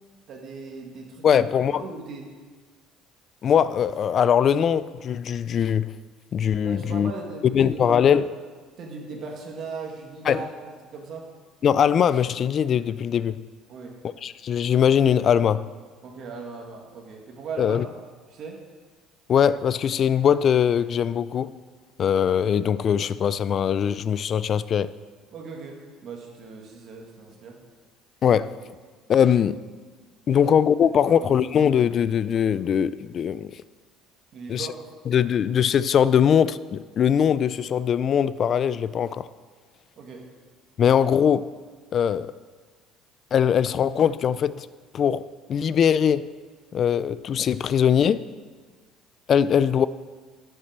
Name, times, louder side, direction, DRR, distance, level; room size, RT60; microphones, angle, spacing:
voice 1, 0.3-1.4 1.8-2.3 6.6-8.2 8.8-11.3 13.7-14.0 16.0-17.9 18.3-18.6 25.3-27.6 30.4-30.5 31.1-31.4 34.3-34.8 40.0-40.2, right 4 dB, 45° right, 1.9 m, -38 dB
voice 2, 1.2-1.8 3.4-5.9 6.3-7.1 7.4-8.3 10.3-10.5 11.6-13.4 14.2-15.7 17.6-17.8 19.3-21.6 22.0-24.9 28.2-28.5 29.1-29.6 30.3-33.5 34.5-34.7 35.1-39.3 40.8-41.5 41.9-42.3 43.3-44.7 44.9-46.3 46.7-48.3 49.3-49.9, left 8 dB, 40° left, 0.4 m, -21 dB
11.5 x 7.6 x 6.7 m
cardioid pair, 140°, 0 cm